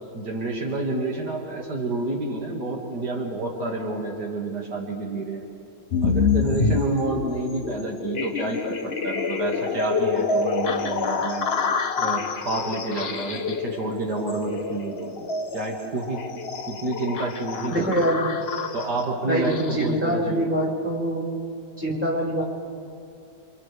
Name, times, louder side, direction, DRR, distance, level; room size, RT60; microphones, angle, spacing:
voice 1, 0.1-5.4 6.0-11.5 12.0-15.2 15.5-16.2 16.7-18.1 18.7-20.5, right 2 dB, 70° right, -1 dB, 2.6 m, -29 dB
sound 1, 5.9-20.0, left 5 dB, 45° left, 1.0 m, -27 dB
voice 2, 17.7-18.3 19.3-21.3 21.8-22.4, right 1 dB, 5° right, -7 dB, 5.5 m, -24 dB
28.5 x 27.5 x 3.4 m, 2.5 s
omnidirectional pair, 1.8 m